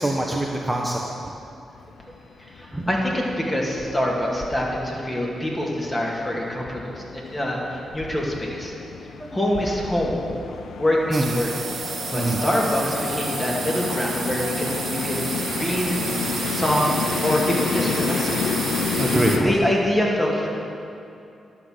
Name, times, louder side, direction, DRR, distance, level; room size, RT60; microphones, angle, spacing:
voice 1, 0.0-1.3 2.6-2.9 9.2-9.4 11.1-11.3 12.1-12.4 18.8-19.5, right 1 dB, 10° right, -1 dB, 1.0 m, -24 dB
sound 1, 1.8-19.4, left 6 dB, 80° left, 0.4 m, -31 dB
voice 2, 2.5-8.7 9.3-10.2 10.8-11.5 12.1-15.2 15.5-16.0 16.5-16.8 17.2-18.6 19.4-20.5, left 1 dB, 20° left, -3 dB, 2.5 m, -25 dB
sound 2, 11.1-19.4, right 5 dB, 60° right, 0.9 m, -30 dB
11.5 x 5.9 x 6.6 m, 2.6 s
supercardioid pair, 50°, 0 cm